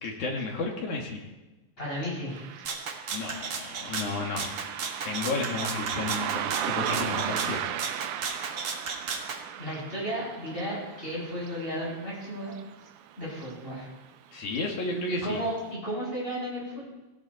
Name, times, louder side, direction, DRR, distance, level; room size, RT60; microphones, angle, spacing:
voice 1, 0.0-1.3 3.1-4.5 5.0-7.6 14.3-15.4, left 3 dB, 75° left, 0 dB, 3.8 m, -32 dB
voice 2, 1.8-2.6 9.6-12.5 13.2-13.9 15.1-16.9, equal, 15° left, -6 dB, 7.9 m, -34 dB
Car passing by, 2.3-13.1 13.4-13.5 14.5-14.6 15.1-15.2 15.7-15.8, right 10 dB, 75° right, 1.3 m, -36 dB
Rattle (instrument), 2.7-9.4, right 5 dB, 50° right, 2.0 m, -35 dB
17.5 x 17.0 x 4.4 m, 1.1 s
omnidirectional pair, 3.4 m